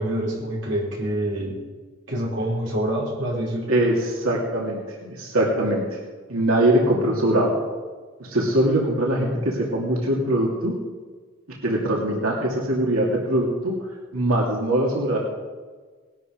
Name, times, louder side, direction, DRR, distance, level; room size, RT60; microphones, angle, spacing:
voice 1, 0.0-1.6 2.1-3.7, right 1 dB, 60° right, -3 dB, 4.1 m, -26 dB
voice 2, 3.7-5.8 6.3-7.5 8.2-10.7 11.6-13.7 14.1-15.2, right 1 dB, 90° right, -2 dB, 2.6 m, -22 dB
19.0 x 12.0 x 5.2 m, 1.4 s
head